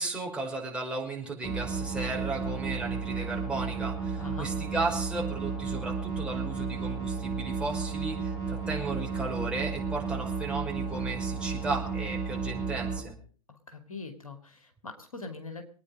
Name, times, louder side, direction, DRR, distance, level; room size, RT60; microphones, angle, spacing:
voice 1, 0.0-13.2, right 3 dB, 5° right, -2 dB, 5.5 m, -35 dB
sound 1, 1.4-13.0, right 5 dB, 20° left, 7.0 m, -33 dB
voice 2, 4.2-4.5 13.5-15.6, left 3 dB, 75° left, 6 dB, 2.7 m, -42 dB
25.0 x 9.6 x 5.3 m, 0.43 s
figure-of-eight pair, 100°, 18 cm